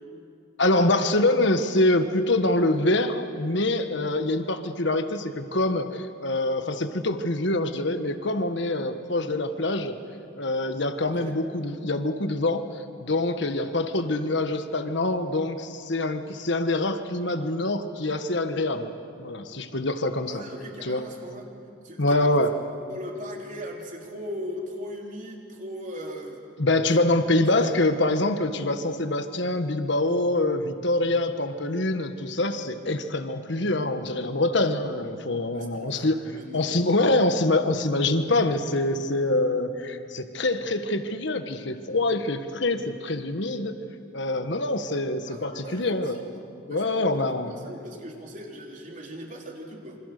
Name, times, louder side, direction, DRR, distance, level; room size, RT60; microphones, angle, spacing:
voice 1, 0.6-10.0 10.4-12.7 13.0-18.9 19.2-20.4 20.8-21.0 22.0-22.5 26.6-36.2 36.5-43.7 44.1-46.2 46.7-47.5, left 2 dB, 60° left, 8 dB, 1.4 m, -25 dB
voice 2, 20.3-21.5 21.8-22.4 22.9-26.4 27.4-27.9 35.5-36.9 45.3-50.0, equal, 40° right, 1 dB, 3.3 m, -39 dB
27.5 x 25.5 x 6.8 m, 2.5 s
head